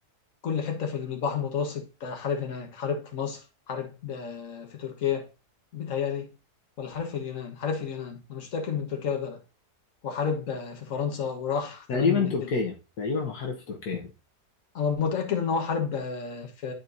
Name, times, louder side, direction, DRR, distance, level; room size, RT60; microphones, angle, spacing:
voice 1, 0.4-3.4 3.7-5.3 5.7-6.3 6.8-9.4 10.0-12.4 14.7-16.7, left 6 dB, 55° left, 1.6 m, -30 dB
voice 2, 11.9-14.1, left 5 dB, 75° left, 1.6 m, -28 dB
11.0 x 4.4 x 2.6 m
omnidirectional pair, 1.7 m